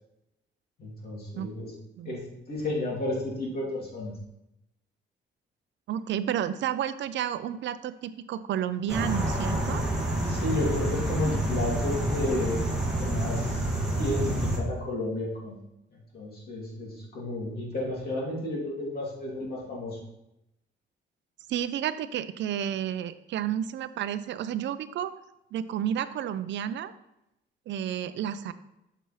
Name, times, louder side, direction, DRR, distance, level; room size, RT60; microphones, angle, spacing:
voice 1, 0.8-1.7 2.0-4.1 10.2-12.7 13.0-13.5 14.0-15.6 15.9-20.0, left 1 dB, 55° left, -4 dB, 2.5 m, -32 dB
voice 2, 5.9-9.8 21.5-25.1 25.5-26.9 27.7-28.5, right 10 dB, 70° right, 13 dB, 0.4 m, -31 dB
sound 1, 8.9-14.6, right 1 dB, ahead, 1.6 m, -28 dB
6.7 x 6.0 x 3.1 m, 0.86 s
cardioid pair, 130°, 19 cm